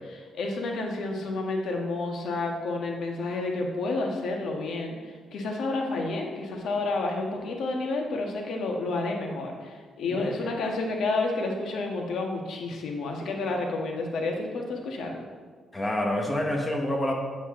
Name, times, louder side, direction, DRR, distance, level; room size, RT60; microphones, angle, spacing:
voice 1, 0.3-15.3, left 3 dB, 75° left, 1 dB, 1.5 m, -30 dB
voice 2, 15.7-17.1, left 1 dB, 20° left, 1 dB, 1.4 m, -27 dB
8.2 x 7.8 x 3.8 m, 1.5 s
cardioid pair, 90°, 0 cm